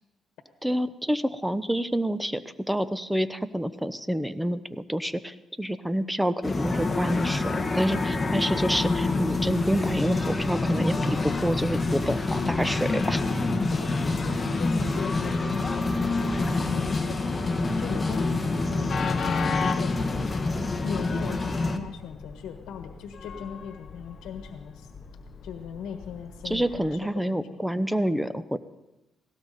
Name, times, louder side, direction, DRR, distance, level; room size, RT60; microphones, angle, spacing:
voice 1, 0.6-2.4 2.7-13.2 26.4-28.6, equal, 5° right, 14 dB, 0.8 m, -28 dB
sound 1, 6.4-21.8, left 3 dB, 25° left, 1.4 m, -27 dB
Train, 8.5-27.0, left 5 dB, 45° left, 1.1 m, -40 dB
voice 2, 14.2-19.3 19.8-20.1 20.8-24.9 25.4-27.6, left 7 dB, 80° left, 5 dB, 1.4 m, -38 dB
18.0 x 17.0 x 4.2 m, 0.96 s
cardioid pair, 90°, 0 cm